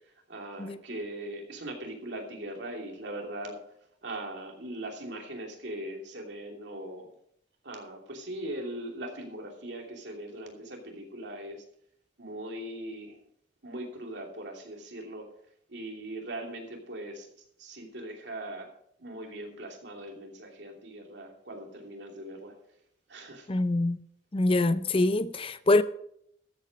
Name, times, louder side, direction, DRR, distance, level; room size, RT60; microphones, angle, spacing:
voice 1, 0.3-3.6 4.0-7.1 7.6-11.6 12.2-13.2 13.6-15.3 15.7-17.3 17.6-18.7 19.0-22.5 23.1-23.5, right 1 dB, 70° right, 2.8 m, -40 dB
voice 2, 23.5-24.0 24.3-25.8, left 2 dB, 30° left, 0.6 m, -24 dB
13.5 x 8.2 x 5.2 m
head